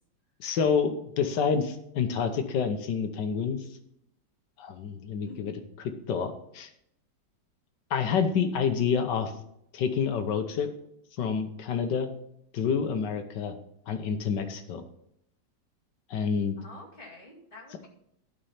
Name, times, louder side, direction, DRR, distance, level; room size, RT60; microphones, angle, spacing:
voice 1, 0.4-3.6 4.6-6.7 7.9-9.3 9.7-10.7 11.2-12.1 12.5-13.5 13.9-14.8 16.1-16.6, left 6 dB, 75° left, 7 dB, 1.6 m, -28 dB
voice 2, 5.3-5.6 16.6-17.9, left 2 dB, 30° left, -3 dB, 2.6 m, -47 dB
12.0 x 5.6 x 5.6 m, 0.75 s
omnidirectional pair, 2.0 m